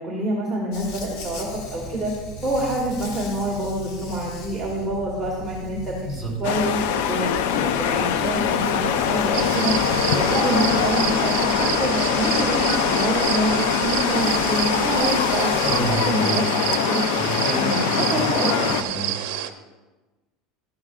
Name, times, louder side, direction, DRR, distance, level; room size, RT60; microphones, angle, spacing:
voice 1, 0.0-2.1 2.4-6.0 6.4-6.8 7.1-7.3 7.6-9.8 10.1-15.5 15.8-16.4 16.9-17.0 17.5-18.5, right 1 dB, 10° right, -6 dB, 1.5 m, -26 dB
Dog, 0.7-15.9, left 1 dB, 50° left, 1.3 m, -38 dB
voice 2, 6.0-6.4 15.6-16.5 17.2-18.3 18.6-19.1, right 1 dB, 10° left, -4 dB, 3.0 m, -29 dB
sound 1, 6.4-18.8, left 8 dB, 75° left, 0.6 m, -23 dB
sound 2, 9.3-19.5, right 11 dB, 70° right, 0.7 m, -28 dB
13.0 x 11.0 x 2.5 m, 1.2 s
cardioid pair, 175°, 0 cm